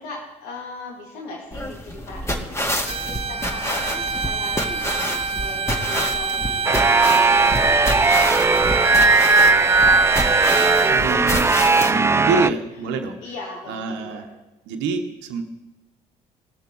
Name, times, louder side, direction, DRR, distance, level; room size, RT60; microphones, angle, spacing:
voice 1, 0.0-2.5 2.9-10.2 10.8-11.5 12.8-13.0 13.2-14.3, left 3 dB, 85° left, -1 dB, 2.6 m, -38 dB
sound 1, 1.5-11.9, equal, 15° left, 1.9 m, -28 dB
Bowed string instrument, 2.8-11.0, right 5 dB, 30° right, 0.8 m, -27 dB
sound 2, 6.6-12.5, right 3 dB, 15° right, 0.4 m, -17 dB
voice 2, 10.9-13.2 13.7-14.3 14.7-15.4, right 4 dB, 75° right, 5 dB, 1.1 m, -26 dB
19.0 x 6.8 x 4.7 m, 0.97 s
hypercardioid pair, 50°, 19 cm